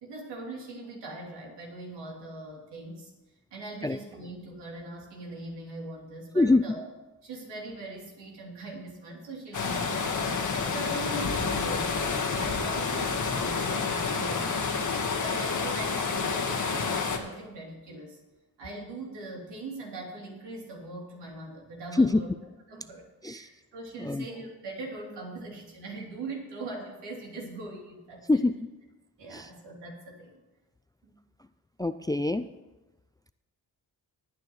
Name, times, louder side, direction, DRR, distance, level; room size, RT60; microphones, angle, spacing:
voice 1, 0.0-3.1 3.5-6.9 7.2-10.4 10.7-14.8 15.2-18.2 18.6-22.3 22.7-28.4 29.2-30.4 31.0-31.1, right 2 dB, 85° right, -2 dB, 3.4 m, -41 dB
sound 1, 9.5-17.2, left 5 dB, 45° left, 1.6 m, -29 dB
voice 2, 21.9-22.2 23.2-23.5 24.0-24.3 28.3-28.5 29.3-29.5 31.8-32.5, left 2 dB, 10° left, 12 dB, 0.3 m, -24 dB
19.0 x 9.1 x 3.2 m, 1.1 s
cardioid pair, 60°, 41 cm